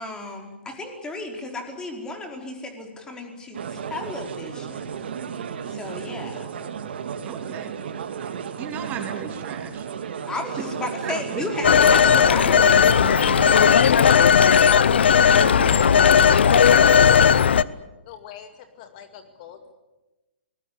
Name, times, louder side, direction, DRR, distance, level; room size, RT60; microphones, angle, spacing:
voice 1, 0.0-5.0 5.7-6.5 10.3-14.1, left 2 dB, 10° left, 4 dB, 4.8 m, -34 dB
sound 1, 3.5-13.8, right 7 dB, 65° right, 2.4 m, -33 dB
voice 2, 7.2-7.7 8.2-9.9 11.0-11.4 15.0-16.8, right 8 dB, 25° right, 5 dB, 3.0 m, -37 dB
Telephone, 11.6-17.6, left 7 dB, 70° left, 0.9 m, -16 dB
voice 3, 15.8-17.2 18.0-19.7, left 8 dB, 45° left, 8 dB, 2.2 m, -39 dB
27.5 x 20.5 x 8.4 m, 1.0 s
hypercardioid pair, 130°, 6 cm